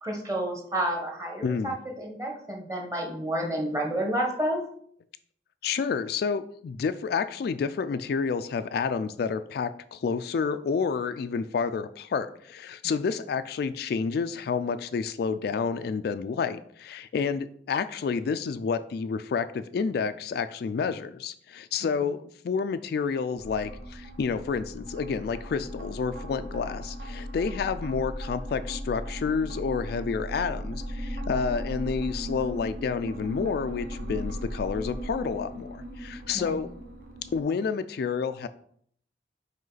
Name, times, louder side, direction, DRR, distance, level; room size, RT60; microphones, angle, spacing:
voice 1, 0.0-4.6 36.3-36.6, right 1 dB, 20° right, 1 dB, 1.3 m, -30 dB
voice 2, 1.4-1.7 5.6-36.7 37.3-38.5, left 5 dB, 60° left, 11 dB, 0.3 m, -29 dB
sound 1, 23.4-37.4, equal, 50° right, 0.9 m, -37 dB
5.1 x 4.7 x 4.0 m, 0.64 s
head